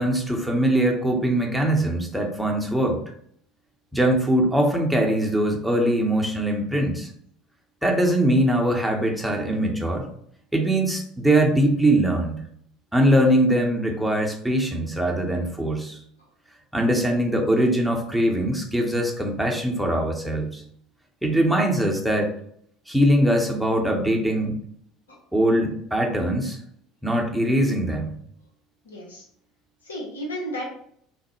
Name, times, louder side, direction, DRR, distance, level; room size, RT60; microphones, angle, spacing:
voice 1, 0.0-3.0 3.9-7.1 7.8-10.1 10.5-12.4 12.9-16.0 16.7-20.6 21.2-22.3 22.9-24.6 25.3-26.6 27.0-28.1, right 1 dB, ahead, 0 dB, 0.8 m, -22 dB
voice 2, 28.8-29.2 29.8-30.7, equal, 90° left, -2 dB, 0.8 m, -33 dB
3.1 x 2.0 x 3.0 m, 0.65 s
hypercardioid pair, 70°, 0 cm